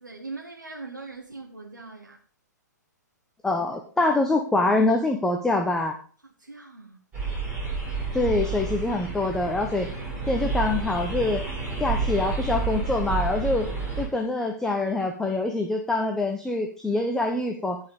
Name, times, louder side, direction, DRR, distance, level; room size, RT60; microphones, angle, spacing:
voice 1, 0.0-2.2 6.4-7.0, right 3 dB, 90° right, -1 dB, 2.2 m, -40 dB
voice 2, 3.4-6.0 8.1-9.9 10.3-11.4 11.8-13.7 14.0-17.8, left 2 dB, 5° left, 3 dB, 1.1 m, -25 dB
sound 1, 7.1-14.0, right 4 dB, 15° right, 6.8 m, -30 dB
16.0 x 5.6 x 5.1 m, 0.41 s
figure-of-eight pair, 120°, 10 cm